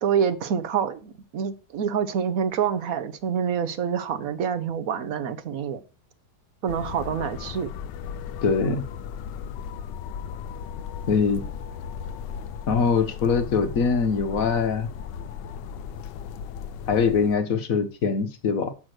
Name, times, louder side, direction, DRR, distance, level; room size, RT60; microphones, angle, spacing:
voice 1, 0.0-5.8 6.6-7.7, right 7 dB, 60° right, 1.1 m, -27 dB
sound 1, 6.7-17.4, left 7 dB, 80° left, 1.2 m, -36 dB
voice 2, 8.4-8.8 11.1-11.4 12.7-14.9 16.9-18.7, left 5 dB, 60° left, 1.2 m, -23 dB
6.1 x 6.1 x 6.4 m
omnidirectional pair, 1.9 m